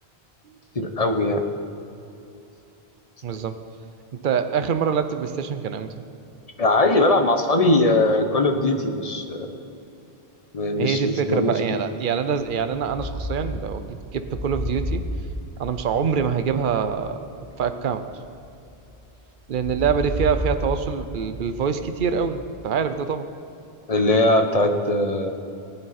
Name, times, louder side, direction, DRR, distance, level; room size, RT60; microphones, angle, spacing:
voice 1, 0.7-1.5 6.6-9.6 10.5-11.8 23.9-25.3, left 2 dB, 40° left, 6 dB, 0.9 m, -20 dB
voice 2, 3.2-3.6 4.2-5.9 10.8-15.0 15.6-17.2 17.6-18.1 19.5-23.3, right 7 dB, 55° right, 9 dB, 0.8 m, -25 dB
sound 1, 12.4-19.0 19.5-22.7, equal, 10° right, 1.6 m, -33 dB
19.5 x 9.0 x 4.2 m, 2.7 s
omnidirectional pair, 1.1 m